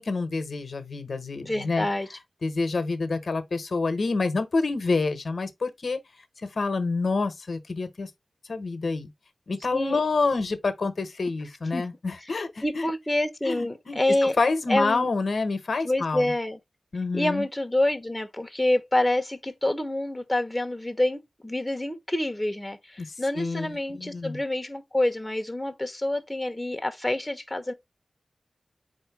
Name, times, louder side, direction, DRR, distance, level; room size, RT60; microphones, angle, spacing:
voice 1, 0.0-1.9 2.4-6.0 6.5-8.1 8.5-9.1 9.5-12.9 13.4-16.3 16.9-17.5 23.0-24.4, left 3 dB, 65° left, 0.9 m, -28 dB
voice 2, 1.4-2.1 9.7-10.0 11.7-11.9 12.6-14.4 14.7-15.1 15.8-16.6 17.1-27.7, left 1 dB, 10° left, 0.9 m, -27 dB
4.4 x 2.6 x 4.6 m
wide cardioid pair, 85°, 0 cm